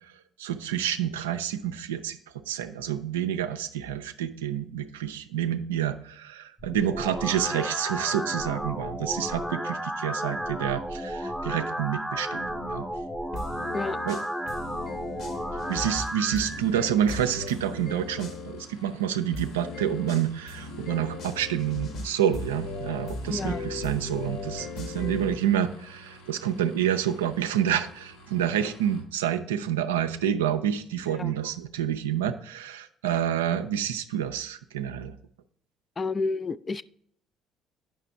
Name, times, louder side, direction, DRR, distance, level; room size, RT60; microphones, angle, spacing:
voice 1, 0.4-2.2 2.5-12.8 14.1-14.2 15.5-35.2, right 10 dB, 75° right, 9 dB, 0.4 m, -28 dB
sound 1, 6.6-16.6, equal, 5° left, 0.7 m, -33 dB
sound 2, 13.3-18.7 19.3-25.3, left 3 dB, 55° left, 1.2 m, -37 dB
sound 3, 15.6-29.0, right 1 dB, 80° left, 1.3 m, -50 dB
voice 2, 23.3-23.7 31.1-31.3 36.0-36.8, left 3 dB, 30° left, 16 dB, 0.3 m, -30 dB
8.7 x 5.7 x 3.5 m, 0.67 s
figure-of-eight pair, 50°, 0 cm